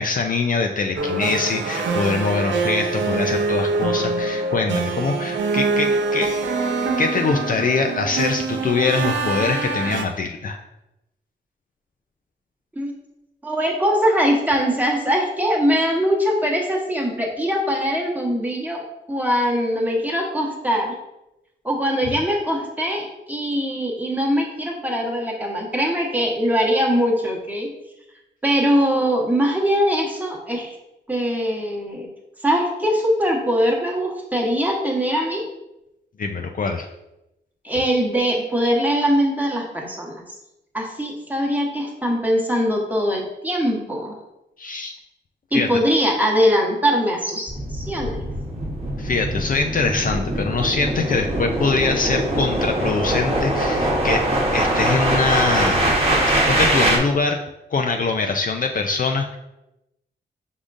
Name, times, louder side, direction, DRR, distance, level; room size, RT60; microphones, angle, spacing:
voice 1, 0.0-6.3 7.0-10.6 36.2-36.9 44.6-44.9 45.5-45.7 49.0-54.2 54.5-55.9 56.5-57.4 57.7-59.4, left 4 dB, 45° left, 4 dB, 0.4 m, -23 dB
sound 1, 1.0-10.0, right 3 dB, 85° right, 0.5 m, -24 dB
voice 2, 13.4-20.9 21.6-27.7 28.4-30.7 31.1-32.1 32.4-35.4 37.6-40.2 40.7-44.1 45.5-48.2, equal, 10° right, -1 dB, 1.1 m, -22 dB
sound 2, 47.5-57.0, right 1 dB, 30° right, 1.1 m, -22 dB
5.0 x 3.6 x 2.5 m, 0.90 s
cardioid pair, 70°, 19 cm